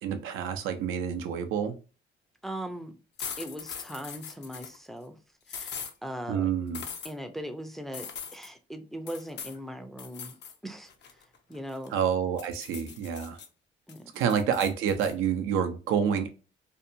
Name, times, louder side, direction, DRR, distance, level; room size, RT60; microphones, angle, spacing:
voice 1, 0.0-1.8 6.3-6.8 11.9-13.4 14.1-16.3, right 8 dB, 85° right, 0.5 m, -28 dB
voice 2, 2.4-2.9 3.4-5.2 5.5-6.5 7.0-10.4 10.6-10.9 11.5-12.0 13.9-14.0, equal, ahead, 0.4 m, -39 dB
sound 1, 3.2-4.8 5.5-5.9 6.7-7.1 7.9-8.5 9.1-9.6 10.0-10.6 10.9-12.0 12.4-13.5 13.9-15.1, left 7 dB, 60° left, 0.5 m, -41 dB
2.7 x 2.1 x 2.5 m
cardioid pair, 90°, 20 cm